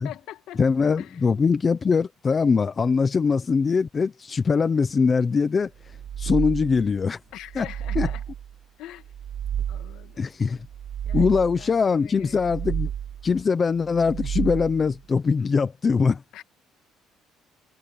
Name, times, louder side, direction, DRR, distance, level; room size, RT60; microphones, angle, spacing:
voice 1, 0.0-0.6 1.0-1.2 7.3-8.2 8.8-9.1 9.7-10.2 11.1-11.3 11.6-12.4 16.3-16.4, left 14 dB, 65° left, 2.1 m, -42 dB
voice 2, 0.6-5.7 6.2-7.2 7.5-7.7 8.0-8.1 10.2-10.7 11.1-12.9 13.2-16.2, left 5 dB, 20° left, 0.7 m, -22 dB
sound 1, 5.9-6.9 7.4-8.5 9.0-10.1 10.6-11.7 12.2-13.3 13.9-15.0, right 9 dB, 45° right, 2.6 m, -31 dB
cardioid pair, 180°, 0 cm